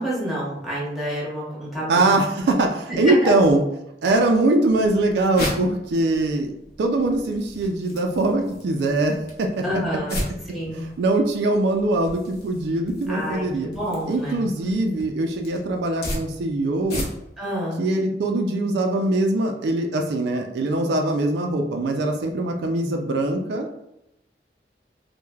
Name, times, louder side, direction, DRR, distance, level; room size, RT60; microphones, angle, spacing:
voice 1, 0.0-2.0 3.0-3.3 9.6-10.9 13.1-14.4 17.4-17.8, equal, ahead, -6 dB, 0.9 m, -28 dB
voice 2, 1.9-3.6 4.0-6.5 6.8-9.6 10.7-13.7 14.1-17.1 17.8-23.7, right 2 dB, 70° right, 3 dB, 0.3 m, -22 dB
sound 1, 4.7-17.5, left 1 dB, 60° left, 0.7 m, -36 dB
3.1 x 2.1 x 2.3 m, 0.86 s
head